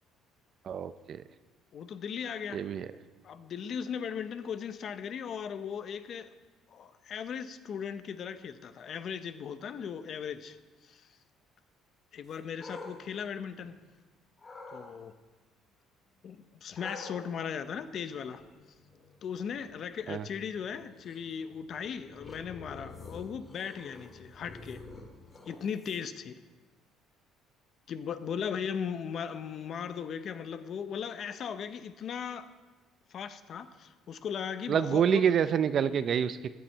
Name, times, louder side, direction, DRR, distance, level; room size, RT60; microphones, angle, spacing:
voice 1, 0.6-1.2 2.5-2.9 20.1-20.3 34.7-36.5, right 8 dB, 45° right, 14 dB, 0.4 m, -27 dB
voice 2, 1.7-2.6 3.2-6.3 6.7-10.6 10.8-11.1 12.1-13.8 14.7-15.1 16.2-18.4 19.2-24.8 25.5-26.4 27.9-32.5 33.1-35.3, left 7 dB, 45° left, 12 dB, 0.6 m, -37 dB
sound 1, 12.2-14.0 14.4-14.9 16.8-26.2, left 3 dB, 25° left, 1.8 m, -49 dB
14.5 x 9.6 x 4.5 m, 1.3 s
cardioid pair, 130°, 0 cm